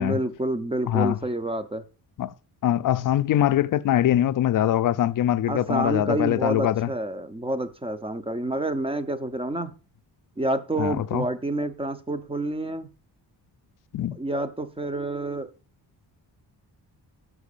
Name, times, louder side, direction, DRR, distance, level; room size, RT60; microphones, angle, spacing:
voice 1, 0.0-1.8 5.5-9.7 10.4-12.9 14.2-15.5, right 1 dB, 15° right, 0.6 m, -28 dB
voice 2, 0.9-1.2 2.2-2.3 2.6-6.9 10.8-11.3 13.9-14.2, left 11 dB, 50° left, 0.5 m, -23 dB
6.1 x 5.9 x 6.6 m
wide cardioid pair, 140°, 41 cm